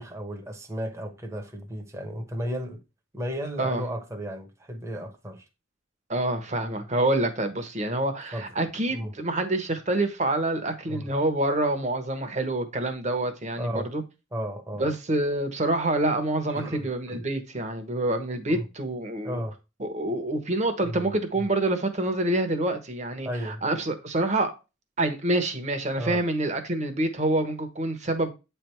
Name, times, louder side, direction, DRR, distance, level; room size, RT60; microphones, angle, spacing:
voice 1, 0.0-2.8 3.1-5.4 8.3-8.5 8.9-9.1 10.9-11.1 13.6-13.9 14.3-14.9 16.5-17.2 18.5-18.7 19.2-19.5 20.8-21.0 21.4-21.5 23.2-23.6 26.0-26.2, equal, 15° right, 1.0 m, -34 dB
voice 2, 6.1-14.0 14.8-19.4 19.8-24.5 25.0-28.3, right 1 dB, 35° right, 1.1 m, -27 dB
8.6 x 3.4 x 4.4 m
head